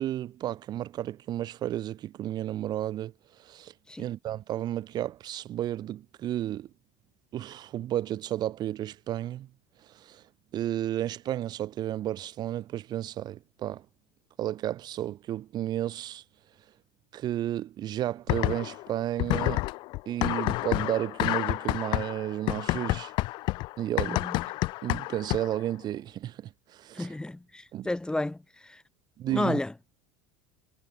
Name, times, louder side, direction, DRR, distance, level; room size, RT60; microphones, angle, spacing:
voice 1, 0.0-6.7 7.3-9.5 9.9-10.2 10.5-13.8 14.4-16.2 17.1-19.7 20.1-23.1 23.8-24.2 24.8-27.1 27.7-27.9 29.2-29.6, right 12 dB, 45° right, 2.2 m, -32 dB
sound 1, 18.3-18.9 19.2-25.7, left 21 dB, 50° left, 0.4 m, -29 dB
voice 2, 24.1-24.4 26.9-28.8 29.3-29.7, left 2 dB, 10° left, 2.6 m, -32 dB
hypercardioid pair, 80°, 10 cm